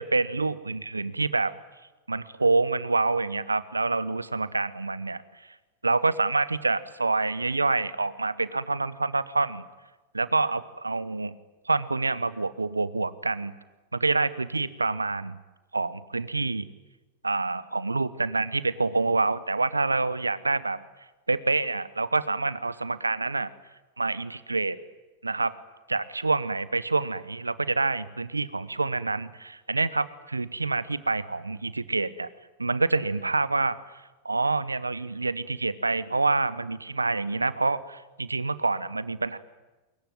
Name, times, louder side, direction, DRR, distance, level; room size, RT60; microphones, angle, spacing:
voice 1, 0.0-1.5 2.1-5.2 5.8-9.6 10.1-11.4 11.7-13.6 13.9-15.4 15.7-16.7 17.2-20.8 21.3-23.5 24.0-24.8 25.2-25.5 25.9-32.3 32.6-33.8 34.2-39.4, right 3 dB, 90° right, 17 dB, 1.0 m, -27 dB
24.0 x 22.0 x 9.3 m, 1.1 s
figure-of-eight pair, 90°, 0 cm